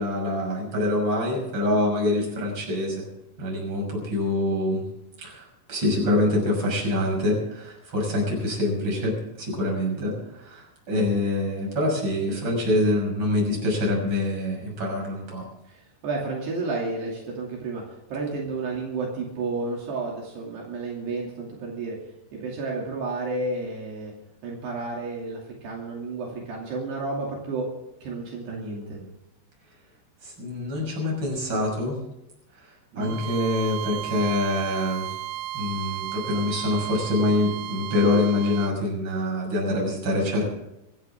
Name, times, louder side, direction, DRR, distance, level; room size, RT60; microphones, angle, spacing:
voice 1, 0.0-3.1 3.4-4.8 5.2-15.4 28.5-29.1 30.2-32.0 32.9-35.1 35.5-40.4, left 1 dB, 25° right, -1 dB, 6.7 m, -25 dB
voice 2, 15.7-17.8 18.1-22.0 22.3-24.1 24.4-27.7 28.0-29.0 32.9-33.2, right 3 dB, 70° right, -2 dB, 4.7 m, -31 dB
Bowed string instrument, 33.0-38.8, right 14 dB, 85° right, 3.0 m, -34 dB
25.5 x 12.5 x 3.7 m, 0.90 s
omnidirectional pair, 5.1 m